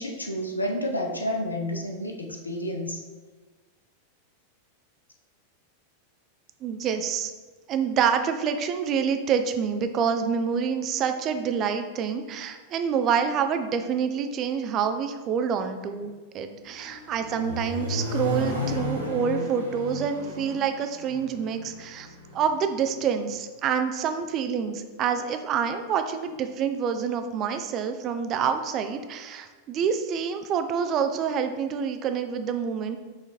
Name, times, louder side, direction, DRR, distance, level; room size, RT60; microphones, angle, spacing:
voice 1, 0.0-3.0, left 1 dB, 80° left, 2 dB, 0.5 m, -30 dB
voice 2, 6.6-7.3 7.7-16.1 16.3-22.1 22.3-33.0, right 7 dB, 35° right, 8 dB, 0.4 m, -27 dB
Accelerating revving vroom, 16.6-22.7, left 2 dB, 85° right, 0.8 m, -33 dB
5.7 x 2.8 x 2.9 m, 1.3 s
figure-of-eight pair, 90°, 0 cm